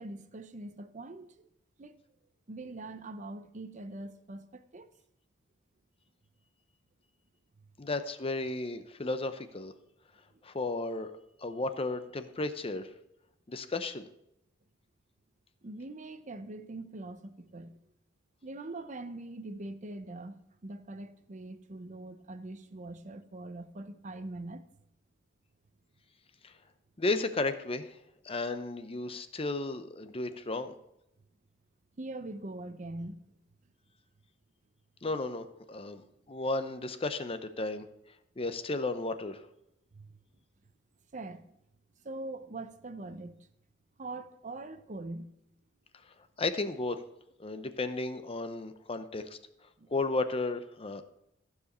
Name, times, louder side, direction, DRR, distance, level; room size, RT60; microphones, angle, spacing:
voice 1, 0.0-1.4 1.8-2.0 2.5-4.9 10.3-10.4 15.6-17.8 18.4-24.6 32.0-33.2 39.9-40.2 41.1-41.5 42.0-43.5 44.0-45.3 49.8-49.9, right 2 dB, 40° right, 0.7 m, -43 dB
voice 2, 7.8-9.7 10.4-11.1 11.4-12.9 13.5-14.1 26.4-26.5 27.0-28.0 28.2-30.8 35.0-37.9 38.4-39.4 46.4-47.0 47.4-49.4 49.9-51.0, left 2 dB, 30° left, 0.7 m, -34 dB
14.5 x 4.9 x 6.6 m
head